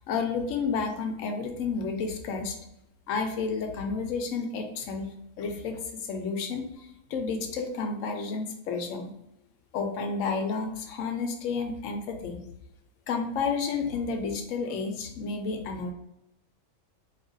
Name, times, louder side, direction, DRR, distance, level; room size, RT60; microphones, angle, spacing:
voice 1, 0.1-2.6 3.1-9.1 9.7-12.4 13.1-15.9, left 4 dB, 70° left, 5 dB, 0.9 m, -31 dB
2.8 x 2.4 x 3.8 m, 0.81 s
omnidirectional pair, 1.5 m